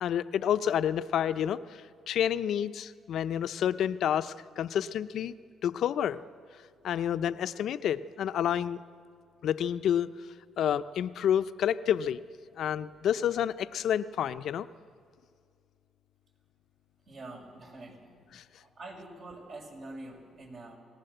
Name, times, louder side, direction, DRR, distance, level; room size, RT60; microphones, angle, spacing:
voice 1, 0.0-5.3 5.6-6.2 6.8-8.8 9.4-10.1 10.6-12.2 12.6-14.7 18.3-18.4, left 9 dB, 70° left, 12 dB, 0.7 m, -29 dB
voice 2, 17.1-18.1 18.6-20.8, right 2 dB, 55° right, 1 dB, 6.0 m, -45 dB
29.0 x 19.5 x 8.0 m, 2.2 s
cardioid pair, 90°, 0 cm